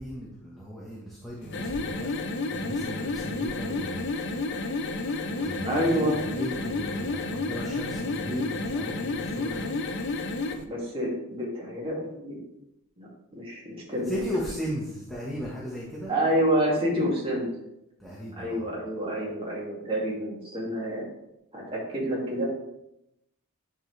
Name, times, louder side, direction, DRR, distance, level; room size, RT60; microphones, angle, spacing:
voice 1, 0.0-2.1 2.5-4.4 5.0-9.7 14.1-16.1 18.0-18.7, equal, ahead, -7 dB, 1.2 m, -36 dB
sound 1, 1.4-10.6, left 3 dB, 55° left, 0.7 m, -31 dB
voice 2, 5.6-6.2 10.6-12.4 13.0-14.3 16.1-17.5 18.3-21.1 21.5-22.5, equal, 25° right, -4 dB, 2.3 m, -28 dB
10.0 x 4.6 x 3.3 m, 0.84 s
head